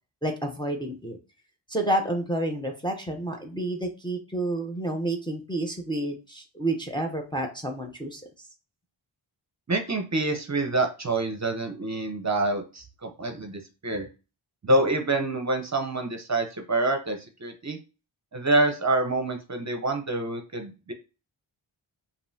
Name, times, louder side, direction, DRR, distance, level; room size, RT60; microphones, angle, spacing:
voice 1, 0.2-1.2 1.7-8.2, right 1 dB, 10° left, 3 dB, 0.7 m, -29 dB
voice 2, 9.7-14.1 14.6-17.8 18.3-20.9, right 2 dB, 35° right, 4 dB, 0.7 m, -27 dB
5.2 x 2.7 x 2.7 m, 0.31 s
wide cardioid pair, 100°, 49 cm